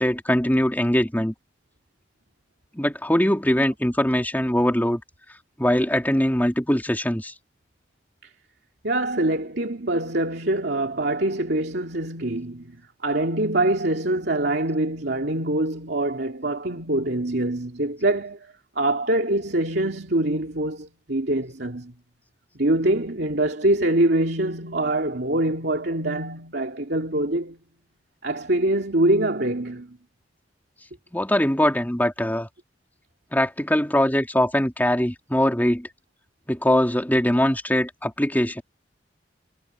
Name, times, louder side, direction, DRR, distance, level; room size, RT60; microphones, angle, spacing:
voice 1, 0.0-1.3 2.7-5.0 5.6-7.3 31.1-32.5 33.3-35.9 36.5-38.6, left 1 dB, 10° left, 3.2 m, -22 dB
voice 2, 8.8-21.9 22.5-27.6 28.2-30.0, right 1 dB, 65° right, 2.7 m, -24 dB
head